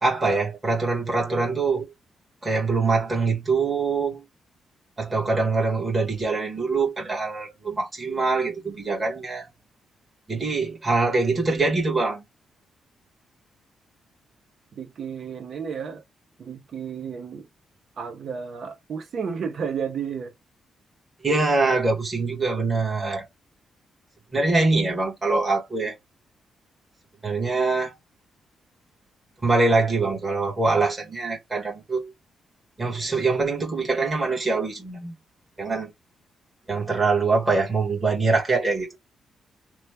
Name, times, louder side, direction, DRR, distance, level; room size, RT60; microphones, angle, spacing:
voice 1, 0.0-1.9 2.4-4.2 5.0-9.5 10.3-12.2 21.2-23.3 24.3-26.0 27.2-28.0 29.4-32.1 32.8-35.1 35.6-35.9 36.7-38.9, right 3 dB, 15° right, 1.3 m, -24 dB
voice 2, 14.7-16.0 16.4-17.5 18.0-20.3, right 6 dB, 50° right, 0.8 m, -32 dB
3.0 x 2.1 x 3.3 m
wide cardioid pair, 170°, 0 cm